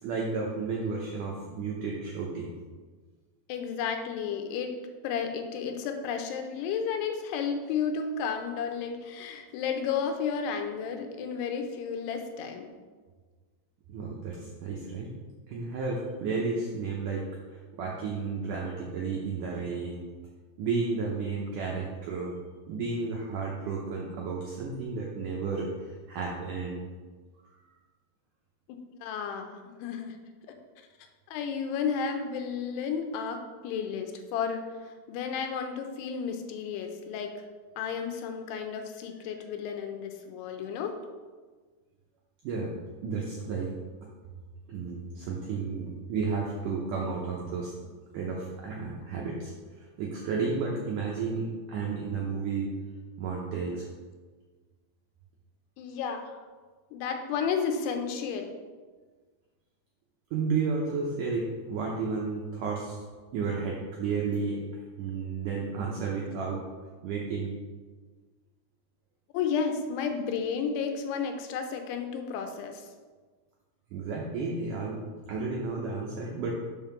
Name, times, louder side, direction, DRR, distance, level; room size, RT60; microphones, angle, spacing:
voice 1, 0.0-2.5 13.9-15.1 15.5-17.2 17.5-20.0 20.6-22.3 22.7-26.8 42.4-42.7 43.0-43.7 44.7-47.7 48.1-49.5 50.0-52.7 53.2-53.9 60.3-63.0 63.3-64.6 65.0-66.6 67.0-67.6 73.9-75.0 75.3-76.5, right 4 dB, 85° right, -2 dB, 1.8 m, -32 dB
voice 2, 3.5-4.7 5.0-12.7 28.7-30.2 31.3-37.4 37.8-41.0 55.8-56.4 56.9-58.5 69.3-72.9, left 6 dB, 85° left, 5 dB, 2.7 m, -32 dB
5.8 x 5.5 x 5.8 m, 1.4 s
omnidirectional pair, 4.7 m